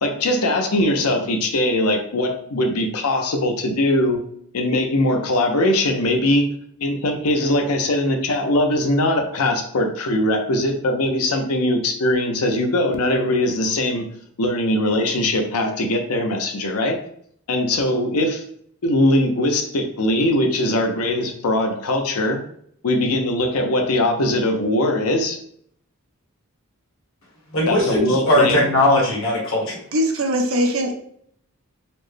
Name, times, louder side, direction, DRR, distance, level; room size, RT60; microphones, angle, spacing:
voice 1, 0.0-4.2 4.5-6.5 6.8-14.0 14.4-17.0 17.5-18.4 18.8-22.4 22.8-25.4 27.7-28.6, left 1 dB, 85° left, 4 dB, 0.6 m, -21 dB
voice 2, 27.5-29.8, left 1 dB, 60° left, -3 dB, 1.4 m, -19 dB
voice 3, 29.9-30.9, equal, 65° right, 4 dB, 0.6 m, -20 dB
4.2 x 2.1 x 3.2 m, 0.64 s
head